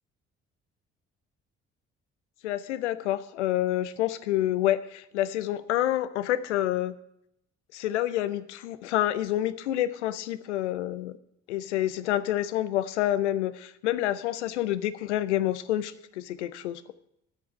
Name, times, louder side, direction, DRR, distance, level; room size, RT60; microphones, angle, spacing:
voice 1, 2.4-6.9 7.7-11.2 11.5-16.8, left 13 dB, 85° left, 14 dB, 0.7 m, -28 dB
11.5 x 6.9 x 8.4 m, 0.76 s
hypercardioid pair, 50°, 34 cm